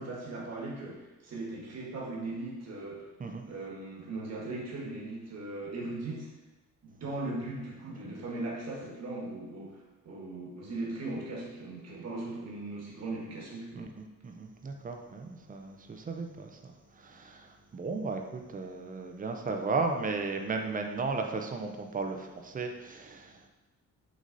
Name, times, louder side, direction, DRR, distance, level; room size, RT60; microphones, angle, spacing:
voice 1, 0.0-3.1 3.5-6.3 6.8-13.9, right 2 dB, 55° right, -2 dB, 1.6 m, -38 dB
voice 2, 13.7-23.5, right 4 dB, 25° right, 4 dB, 0.6 m, -35 dB
6.3 x 4.0 x 4.0 m, 1.1 s
cardioid pair, 130°, 31 cm